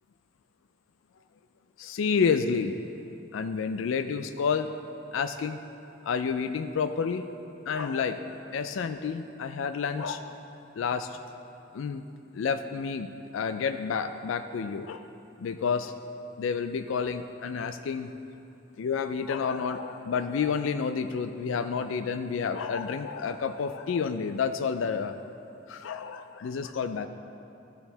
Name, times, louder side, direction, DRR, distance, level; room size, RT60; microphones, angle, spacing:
voice 1, 1.8-2.7 3.3-4.7 5.1-5.6 6.0-7.2 7.7-10.4 10.7-11.2 11.7-12.0 12.3-15.0 15.4-15.9 16.4-18.1 18.8-25.2 25.7-27.1, left 6 dB, 80° left, 9 dB, 0.4 m, -30 dB
13.5 x 7.0 x 3.3 m, 2.8 s
head